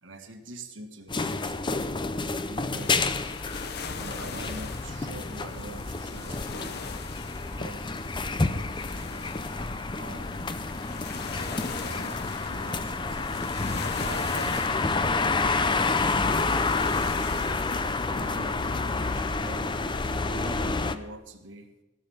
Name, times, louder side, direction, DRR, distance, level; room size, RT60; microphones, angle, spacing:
voice 1, 0.0-3.2 3.9-7.0 7.5-9.3 9.9-10.6 11.8-16.5 17.1-17.3 17.8-19.9 20.2-21.8, right 2 dB, 75° right, 5 dB, 1.6 m, -45 dB
sound 1, 1.1-21.0, left 3 dB, 25° left, 0.6 m, -29 dB
sound 2, 1.9-6.7, right 1 dB, 5° right, 1.2 m, -53 dB
sound 3, 2.8-20.2, left 6 dB, 55° left, 0.8 m, -42 dB
17.0 x 7.1 x 7.2 m, 1.1 s
head